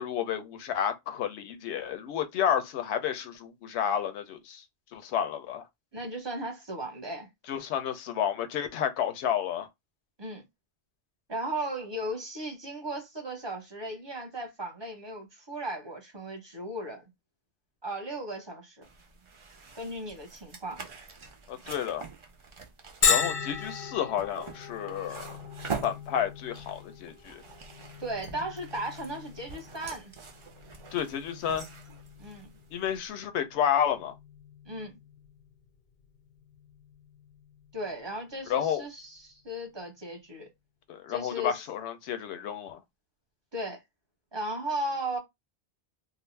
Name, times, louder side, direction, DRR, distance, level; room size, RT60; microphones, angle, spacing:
voice 1, 0.0-4.6 4.9-5.7 7.5-9.7 21.5-22.1 23.1-25.3 25.8-27.4 30.9-31.7 32.7-34.1 38.5-38.8 40.9-42.8, left 9 dB, 80° left, 0.8 m, -31 dB
voice 2, 5.9-7.3 10.2-10.4 11.3-17.0 17.8-18.9 19.7-20.8 28.0-30.1 32.2-32.5 34.7-34.9 37.7-40.5 41.1-41.6 43.5-43.8 44.3-45.2, right 1 dB, 25° right, 0.7 m, -36 dB
sound 1, 18.8-33.1, right 5 dB, 50° right, 0.3 m, -44 dB
Bell, 23.0-38.5, left 7 dB, 55° left, 0.6 m, -36 dB
2.5 x 2.0 x 3.1 m
omnidirectional pair, 1.1 m